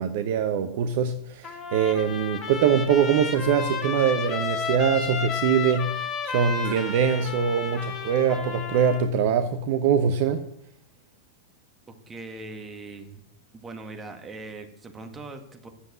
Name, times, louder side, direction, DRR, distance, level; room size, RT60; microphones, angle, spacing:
voice 1, 0.0-10.4, right 7 dB, 50° right, 0.8 m, -23 dB
Trumpet, 1.4-9.0, left 5 dB, 25° left, 1.6 m, -32 dB
Gong, 6.6-9.9, right 4 dB, 70° right, 3.5 m, -48 dB
voice 2, 12.1-13.2 13.5-15.7, right 3 dB, 15° right, 1.9 m, -40 dB
10.0 x 7.4 x 8.7 m
figure-of-eight pair, 90°, 0 cm